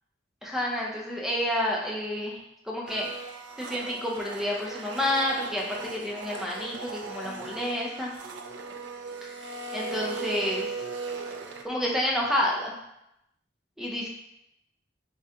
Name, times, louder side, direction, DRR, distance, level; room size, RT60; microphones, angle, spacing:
voice 1, 0.4-2.4 2.7-3.3 3.6-8.1 9.2-10.7 11.6-12.7 13.8-14.1, left 1 dB, ahead, -3 dB, 0.6 m, -29 dB
Domestic sounds home sounds, 2.9-11.6, right 3 dB, 75° right, 0.4 m, -38 dB
5.8 x 2.3 x 2.8 m, 0.83 s
head